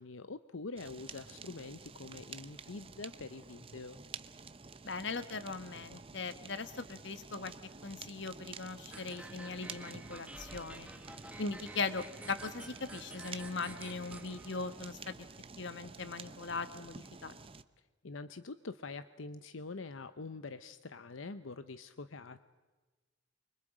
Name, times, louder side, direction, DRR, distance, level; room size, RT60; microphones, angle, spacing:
voice 1, 0.0-4.0 18.0-22.4, left 3 dB, 80° left, 12 dB, 0.8 m, -45 dB
Fire, 0.8-17.6, right 4 dB, 30° right, 0.7 m, -50 dB
voice 2, 4.8-7.5 7.8-10.9 11.4-15.1 15.6-17.3, left 4 dB, 60° left, 11 dB, 1.3 m, -39 dB
sound 1, 8.9-14.9, right 2 dB, 5° right, 1.1 m, -50 dB
29.0 x 25.0 x 5.0 m, 1.3 s
head